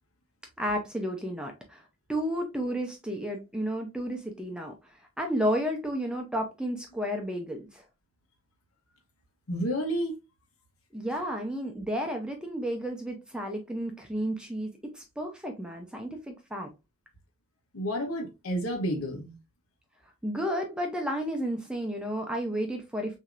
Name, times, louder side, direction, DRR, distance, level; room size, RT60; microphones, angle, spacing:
voice 1, 0.6-4.7 5.2-7.8 10.9-16.7 20.2-23.2, equal, 5° right, 0.6 m, -32 dB
voice 2, 9.5-10.2 17.7-19.3, equal, 85° left, 1.0 m, -30 dB
6.2 x 2.8 x 2.5 m
head